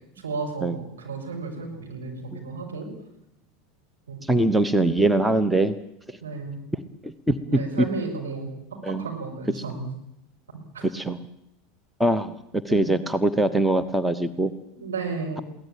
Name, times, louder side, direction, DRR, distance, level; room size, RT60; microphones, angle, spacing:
voice 1, 0.2-2.9 4.1-4.2 6.2-6.6 7.5-8.5 8.9-9.9 10.5-10.8 12.7-12.9 14.7-15.4, right 4 dB, 75° right, 1 dB, 6.3 m, -33 dB
voice 2, 4.2-5.7 6.1-6.2 7.0-7.4 7.8-7.9 8.8-9.0 10.9-11.2 12.0-14.5, right 1 dB, 5° right, 11 dB, 1.2 m, -22 dB
22.5 x 17.0 x 9.0 m, 0.78 s
figure-of-eight pair, 80°, 0 cm